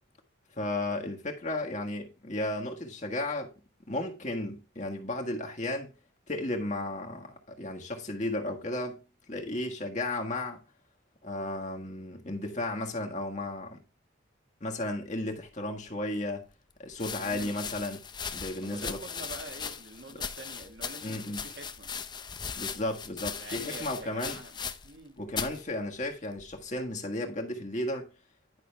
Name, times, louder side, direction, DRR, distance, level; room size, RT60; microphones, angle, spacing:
voice 1, 0.6-3.5 3.9-5.9 6.3-9.0 9.3-10.6 11.2-13.8 14.6-16.4 16.8-18.0 18.3-19.0 20.1-20.2 21.0-21.4 22.6-24.4 25.2-28.1, left 1 dB, 40° left, 1.5 m, -34 dB
sound 1, 15.9-16.0 16.9-25.0 25.3-25.6 26.4-26.8, left 6 dB, 25° left, 0.6 m, -38 dB
voice 2, 17.2-17.6 18.6-21.9 23.4-25.3, right 2 dB, 65° right, 1.9 m, -46 dB
11.0 x 6.0 x 3.4 m
head